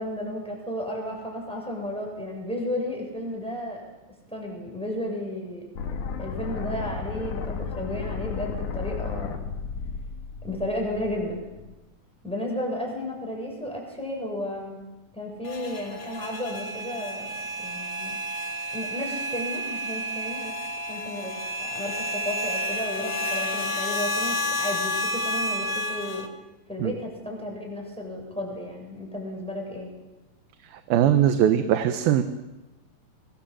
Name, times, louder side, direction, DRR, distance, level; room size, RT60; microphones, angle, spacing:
voice 1, 0.0-3.8 4.3-5.6 6.2-9.4 10.4-11.5 12.2-14.8 15.1-17.3 17.6-18.2 18.7-20.5 20.9-21.3 21.6-26.3 26.7-29.9, left 1 dB, ahead, 0 dB, 7.2 m, -33 dB
sound 1, 5.8-11.7, left 5 dB, 60° left, 3.1 m, -33 dB
sound 2, 15.4-26.3, equal, 30° left, 1.5 m, -30 dB
voice 2, 30.9-32.2, right 10 dB, 85° right, 8 dB, 2.9 m, -20 dB
24.5 x 22.0 x 7.6 m, 1.0 s
omnidirectional pair, 4.1 m